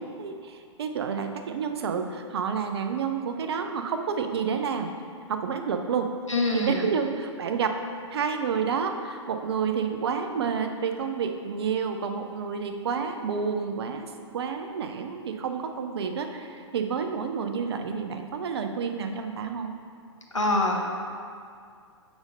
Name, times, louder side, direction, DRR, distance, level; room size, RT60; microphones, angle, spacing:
voice 1, 0.0-4.9 5.3-6.1 6.5-7.7 8.1-19.8, right 6 dB, 55° right, 6 dB, 0.5 m, -29 dB
voice 2, 6.3-6.8 20.3-20.9, left 2 dB, 85° left, 0 dB, 0.8 m, -24 dB
7.0 x 5.3 x 2.6 m, 2.3 s
figure-of-eight pair, 115°, 16 cm